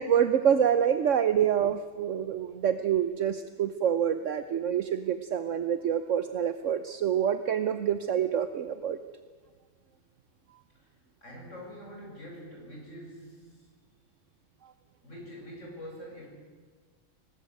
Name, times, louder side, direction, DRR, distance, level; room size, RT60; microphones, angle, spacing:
voice 1, 0.0-9.0, right 9 dB, 65° right, 10 dB, 1.2 m, -26 dB
voice 2, 11.2-13.7 15.0-16.3, equal, 65° left, -1 dB, 7.8 m, -45 dB
24.5 x 19.5 x 8.8 m, 1.6 s
omnidirectional pair, 1.4 m